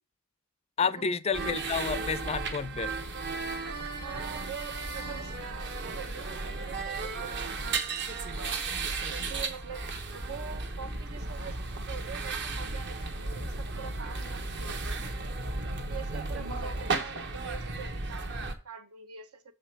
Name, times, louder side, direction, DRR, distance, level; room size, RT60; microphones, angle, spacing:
voice 1, 0.8-2.9, left 5 dB, 25° left, 0.4 m, -30 dB
sound 1, 1.3-18.6, right 3 dB, 50° right, 1.1 m, -34 dB
voice 2, 4.0-9.9 10.1-15.2 15.9-19.6, right 7 dB, 75° right, 1.1 m, -45 dB
7.1 x 5.1 x 5.9 m
head